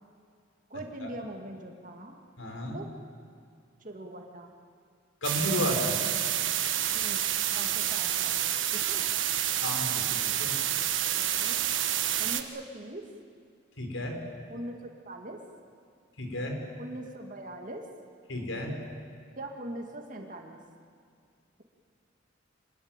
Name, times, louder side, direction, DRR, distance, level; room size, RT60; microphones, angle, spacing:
voice 1, 0.7-2.2 2.7-2.9 3.8-4.5 6.9-9.1 11.2-11.6 12.2-13.0 14.5-14.8 15.1-15.4 16.8-17.9 19.4-20.6, right 1 dB, 40° right, 2 dB, 2.2 m, -42 dB
voice 2, 2.4-2.8 5.2-5.9 9.6-10.5 13.8-14.2 16.2-16.5 18.3-18.7, left 1 dB, 85° left, 3 dB, 4.8 m, -32 dB
sound 1, 5.2-12.4, right 11 dB, 80° right, 1.4 m, -28 dB
25.5 x 20.5 x 9.1 m, 2.2 s
head